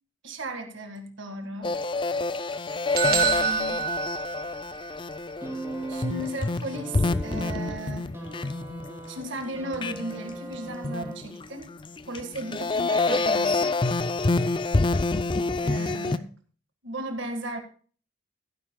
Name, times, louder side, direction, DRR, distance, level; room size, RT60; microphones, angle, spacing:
voice 1, 0.2-1.7 3.1-3.8 5.9-8.1 9.1-11.7 12.1-13.8 15.6-16.3 16.8-17.6, right 1 dB, 60° right, 5 dB, 1.8 m, -36 dB
sound 1, 1.6-9.4 9.7-10.3 10.7-16.2, left 3 dB, 25° left, 0.4 m, -27 dB
sound 2, 3.0-4.9, right 7 dB, 45° right, 1.6 m, -27 dB
sound 3, 5.4-11.6 12.6-12.7, right 2 dB, 10° right, 3.0 m, -38 dB
16.5 x 10.0 x 2.2 m, 0.42 s
head